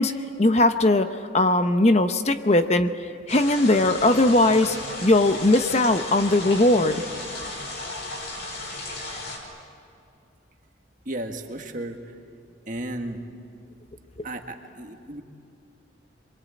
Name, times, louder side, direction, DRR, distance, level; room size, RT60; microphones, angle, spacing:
voice 1, 0.0-2.9 3.3-7.0, left 2 dB, 35° left, 8 dB, 0.8 m, -20 dB
sound 1, 3.3-9.4, left 2 dB, 60° left, 5.8 m, -35 dB
voice 2, 11.1-12.0 12.7-13.2 14.2-15.2, right 1 dB, 40° right, 4 dB, 1.8 m, -34 dB
27.5 x 23.0 x 8.5 m, 2.4 s
head